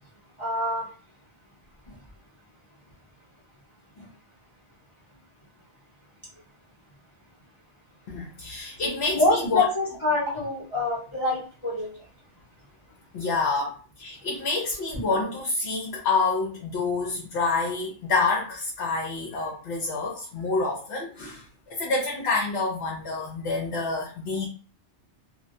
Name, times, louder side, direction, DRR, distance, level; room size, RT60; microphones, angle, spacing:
voice 1, 0.4-0.9 1.9-2.0 4.0-4.1 8.5-8.6 9.1-11.9, left 2 dB, 30° left, 0.8 m, -26 dB
voice 2, 8.1-9.6 13.1-24.5, left 3 dB, 75° left, 0.9 m, -28 dB
2.3 x 2.1 x 2.5 m
omnidirectional pair, 1.2 m